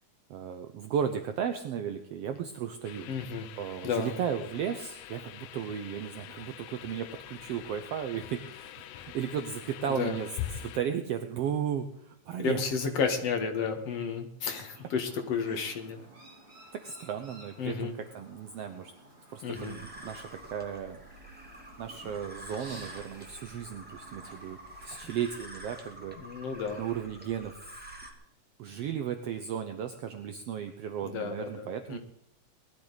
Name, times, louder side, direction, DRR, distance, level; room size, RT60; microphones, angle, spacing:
voice 1, 0.3-3.1 3.6-10.3 10.6-12.7 15.5-15.6 16.7-18.9 19.3-21.0 21.8-26.2 26.8-27.8 28.6-32.0, right 8 dB, 75° right, 7 dB, 1.4 m, -35 dB
sound 1, 2.8-10.8, left 12 dB, 80° left, 2.3 m, -44 dB
voice 2, 3.1-3.5 3.8-4.1 10.0-10.2 12.4-16.1 17.6-17.9 19.4-19.7 26.2-26.8 31.0-32.0, left 6 dB, 55° left, 5 dB, 2.3 m, -32 dB
Chirp tweet, 14.6-25.0, right 2 dB, 50° right, 6.5 m, -54 dB
sound 2, 19.5-28.1, right 1 dB, 5° right, 1.5 m, -47 dB
20.0 x 13.5 x 4.1 m, 0.71 s
omnidirectional pair, 3.8 m